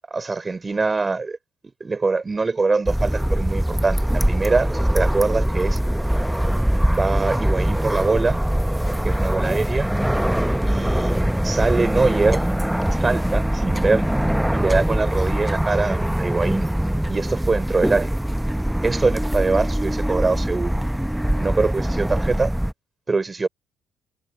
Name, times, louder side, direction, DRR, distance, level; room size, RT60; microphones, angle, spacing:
voice 1, 0.1-1.4 1.8-5.8 6.9-8.4 9.0-9.9 10.7-12.5 12.9-14.1 14.5-16.7 17.1-18.1 18.8-20.8 21.4-22.5 23.1-23.5, right 3 dB, 30° right, 5.8 m, -23 dB
sound 1, 2.9-22.7, equal, 5° right, 0.9 m, -22 dB
hypercardioid pair, 50°, 0 cm